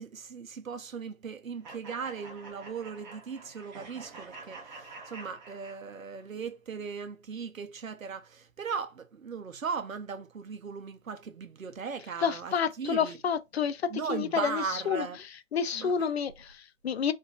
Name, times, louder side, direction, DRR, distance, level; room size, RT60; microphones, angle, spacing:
voice 1, 0.0-13.2 13.9-15.2 15.7-16.1, right 6 dB, 85° right, 0.8 m, -38 dB
sound 1, 1.6-6.2, right 3 dB, 35° right, 1.3 m, -48 dB
voice 2, 12.2-15.1 15.5-17.1, left 7 dB, 55° left, 0.5 m, -29 dB
3.7 x 2.6 x 2.4 m
figure-of-eight pair, 140°, 40 cm